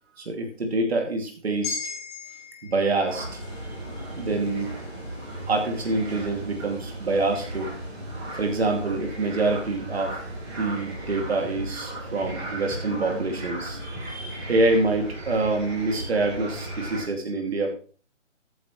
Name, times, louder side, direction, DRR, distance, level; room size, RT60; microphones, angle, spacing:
voice 1, 0.2-1.9 2.6-3.4 4.2-4.7 5.5-7.7 8.4-10.2 10.5-17.7, right 2 dB, 55° right, 2 dB, 2.6 m, -26 dB
sound 1, 1.6-6.1 6.5-6.7, left 6 dB, 20° left, 2.6 m, -40 dB
sound 2, 3.1-17.0, right 1 dB, 15° right, 4.5 m, -36 dB
14.0 x 8.8 x 3.2 m, 0.39 s
figure-of-eight pair, 155°, 37 cm